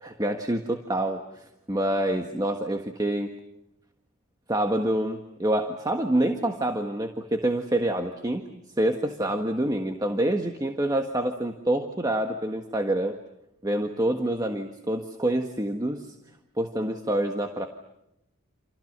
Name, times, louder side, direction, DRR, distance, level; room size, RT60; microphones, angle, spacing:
voice 1, 0.0-3.3 4.5-13.2 13.6-16.1 16.6-17.7, right 1 dB, 15° right, 5 dB, 1.6 m, -27 dB
29.5 x 28.0 x 6.8 m, 0.85 s
head